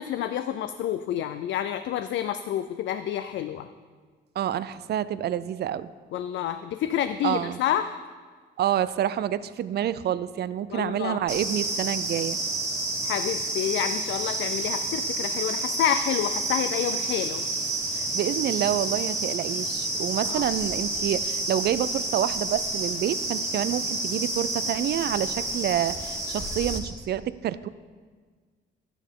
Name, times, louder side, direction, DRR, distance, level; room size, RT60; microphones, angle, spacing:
voice 1, 0.0-3.7 6.1-8.0 10.7-11.2 13.0-17.4 20.3-20.4, left 10 dB, 70° left, 10 dB, 0.4 m, -29 dB
voice 2, 4.4-5.9 7.2-7.6 8.6-12.4 17.9-27.7, right 10 dB, 55° right, 16 dB, 0.4 m, -28 dB
sound 1, 11.3-26.8, right 2 dB, 10° right, 2.0 m, -29 dB
11.5 x 9.9 x 3.7 m, 1.5 s
cardioid pair, 90°, 20 cm